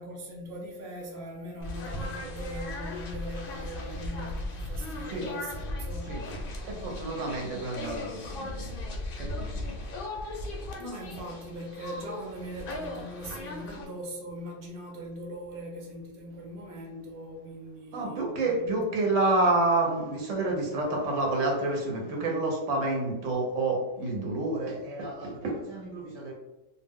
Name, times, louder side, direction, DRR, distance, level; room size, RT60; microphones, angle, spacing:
voice 1, 0.0-6.2 10.8-18.8, equal, 60° right, 0 dB, 0.9 m, -41 dB
sound 1, 1.6-13.8, left 2 dB, 60° left, 0.6 m, -37 dB
voice 2, 6.6-8.7 9.2-9.7 17.9-26.3, right 2 dB, 85° right, -1 dB, 1.1 m, -29 dB
2.4 x 2.1 x 3.4 m, 1.0 s
omnidirectional pair, 1.2 m